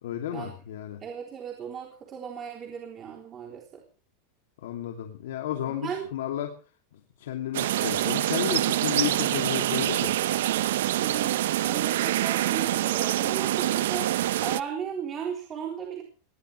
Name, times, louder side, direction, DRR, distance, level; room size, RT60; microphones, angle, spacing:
voice 1, 0.0-1.0 4.6-6.6 6.9-10.2, left 11 dB, 85° left, 3 dB, 2.9 m, -33 dB
voice 2, 1.0-3.8 5.7-6.1 8.8-9.2 11.0-14.1 14.4-16.0, right 7 dB, 25° right, 0 dB, 3.7 m, -36 dB
sound 1, 7.5-14.6, right 13 dB, 80° right, 0.7 m, -26 dB
20.0 x 19.5 x 3.4 m, 0.38 s
supercardioid pair, 155°, 0 cm